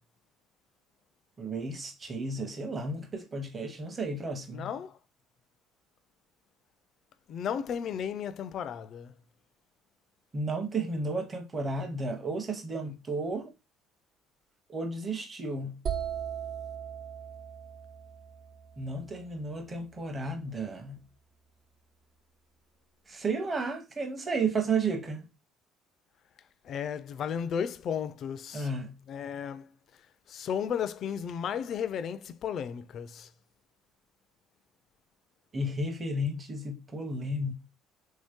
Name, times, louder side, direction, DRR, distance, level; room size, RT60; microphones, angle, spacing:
voice 1, 1.4-4.7 10.3-13.5 14.7-15.8 18.8-21.0 23.1-25.3 28.5-29.0 35.5-37.5, right 2 dB, 25° right, 0.7 m, -33 dB
voice 2, 4.5-5.0 7.3-9.1 12.8-12.9 26.6-28.7 29.1-29.7 30.3-33.3, left 8 dB, 50° left, 0.3 m, -34 dB
sound 1, 15.9-19.6, right 8 dB, 45° right, 0.4 m, -38 dB
3.0 x 2.8 x 3.5 m
cardioid pair, 120°, 0 cm